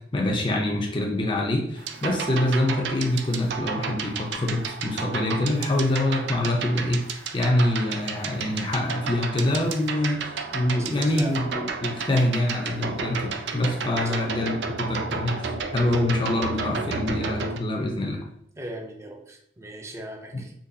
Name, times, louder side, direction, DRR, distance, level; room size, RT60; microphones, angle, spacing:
voice 1, 0.1-18.2, left 1 dB, 30° left, 0 dB, 0.6 m, -25 dB
sound 1, 1.8-17.6, right 5 dB, 80° right, 0.4 m, -32 dB
voice 2, 10.7-11.4 14.0-14.3 18.6-20.5, right 1 dB, 15° right, 2 dB, 0.5 m, -38 dB
3.9 x 2.9 x 2.7 m, 0.68 s
head